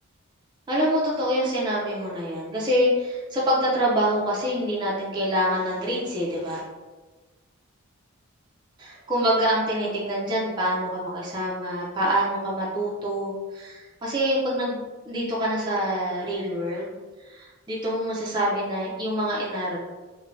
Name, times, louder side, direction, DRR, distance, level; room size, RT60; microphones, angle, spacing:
voice 1, 0.7-6.6 8.8-16.9 17.2-19.8, equal, 20° right, -6 dB, 0.4 m, -26 dB
2.6 x 2.1 x 3.0 m, 1.3 s
head